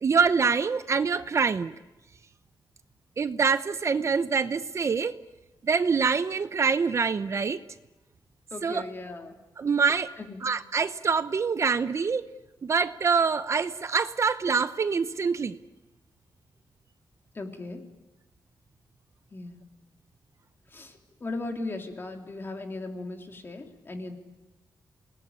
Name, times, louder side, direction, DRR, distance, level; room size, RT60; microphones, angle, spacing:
voice 1, 0.0-1.7 3.2-5.1 5.6-7.6 8.6-8.9 9.6-10.1 10.4-12.3 12.6-15.6, right 5 dB, 40° right, 0.9 m, -25 dB
voice 2, 8.5-9.4 10.2-10.4 17.4-17.8 19.3-19.6 20.7-20.9 21.2-24.1, left 2 dB, 30° left, 3.5 m, -37 dB
28.5 x 20.0 x 9.8 m
wide cardioid pair, 155°, 7 cm